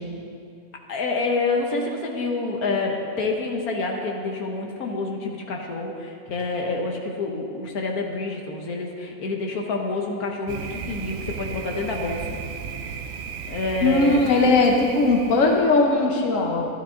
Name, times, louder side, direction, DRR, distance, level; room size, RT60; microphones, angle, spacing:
voice 1, 0.9-12.2 13.5-14.3, left 3 dB, 80° left, 1 dB, 1.6 m, -27 dB
Thunder, 10.5-15.8, right 6 dB, 60° right, 0.7 m, -35 dB
voice 2, 13.8-16.7, left 2 dB, 60° left, 1 dB, 1.3 m, -19 dB
12.0 x 12.0 x 3.8 m, 2.4 s
omnidirectional pair, 1.5 m